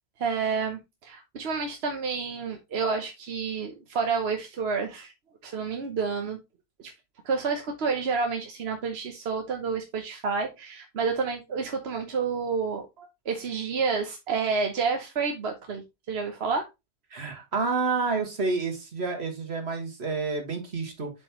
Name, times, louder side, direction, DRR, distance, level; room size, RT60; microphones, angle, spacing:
voice 1, 0.2-5.1 5.4-6.4 6.8-6.9 7.2-16.7, right 5 dB, 75° right, 4 dB, 1.1 m, -29 dB
voice 2, 17.1-21.1, right 4 dB, 90° right, 4 dB, 2.0 m, -29 dB
7.3 x 5.3 x 3.0 m, 0.23 s
omnidirectional pair, 1.1 m